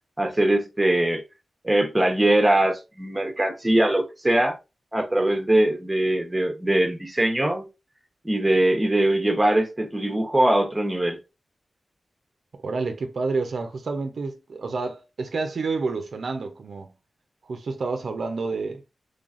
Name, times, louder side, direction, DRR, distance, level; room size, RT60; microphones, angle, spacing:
voice 1, 0.2-1.2 1.6-4.6 4.9-7.7 8.2-11.2, right 1 dB, 15° right, 0.8 m, -21 dB
voice 2, 12.6-16.9 17.5-18.8, right 4 dB, 70° right, 0.5 m, -29 dB
3.9 x 3.2 x 2.4 m
wide cardioid pair, 90°, 0 cm